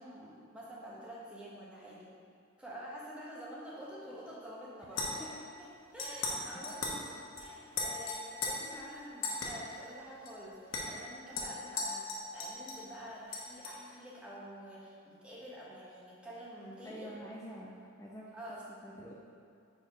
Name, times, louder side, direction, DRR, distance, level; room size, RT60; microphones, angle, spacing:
voice 1, 0.0-2.1 2.6-5.3 5.6-5.7 5.9-10.6 10.9-17.1 18.3-18.6, equal, 5° right, -7 dB, 1.1 m, -48 dB
sound 1, 4.9-5.4 6.0-6.4 6.6-7.0 7.4-7.5 7.7-8.5 9.2-9.5 10.3-10.4 10.7-10.8 11.3-12.9 13.3-13.8, left 3 dB, 90° left, 1.0 m, -37 dB
voice 2, 16.8-18.3 18.8-19.1, equal, 15° left, -4 dB, 0.5 m, -47 dB
4.7 x 4.4 x 5.0 m, 2.3 s
head